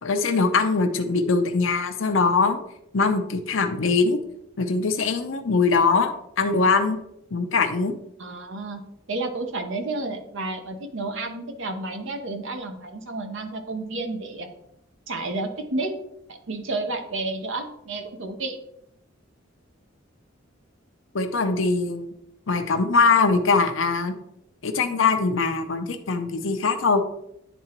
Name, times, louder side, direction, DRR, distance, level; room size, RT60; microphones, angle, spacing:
voice 1, 0.0-2.6 2.9-4.2 4.6-7.0 7.3-7.9 21.1-22.1 22.5-24.1 24.6-27.0, left 4 dB, 75° left, 6 dB, 0.6 m, -22 dB
voice 2, 8.2-8.8 9.1-14.5 15.1-15.9 16.3-18.6, right 2 dB, 70° right, 5 dB, 0.9 m, -31 dB
10.0 x 3.8 x 3.0 m, 0.78 s
head